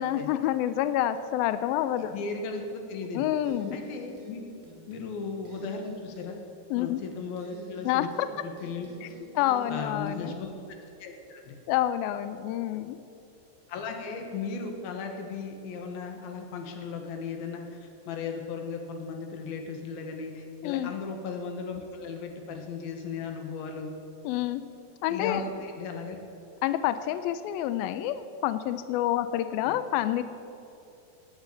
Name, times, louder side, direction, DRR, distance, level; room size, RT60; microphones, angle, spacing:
voice 1, 0.0-2.2 3.2-3.8 6.7-7.0 7.9-8.3 9.0-9.1 9.4-10.4 11.7-13.0 20.6-20.9 24.2-24.6 25.0-25.4 26.6-30.2, left 12 dB, 85° left, 12 dB, 2.1 m, -28 dB
voice 2, 2.0-3.2 3.7-4.4 4.9-6.4 6.7-8.1 8.4-8.9 9.2-9.3 9.7-10.5 11.0-11.6 13.7-23.9 25.1-26.2 29.7-29.8, left 5 dB, 70° left, 4 dB, 3.1 m, -36 dB
sound 1, 3.4-4.3 4.6-5.1 5.4-6.3 7.4-8.3 8.6-10.2, right 2 dB, 65° right, 4.3 m, -46 dB
18.0 x 9.0 x 7.0 m, 2.8 s
omnidirectional pair, 4.8 m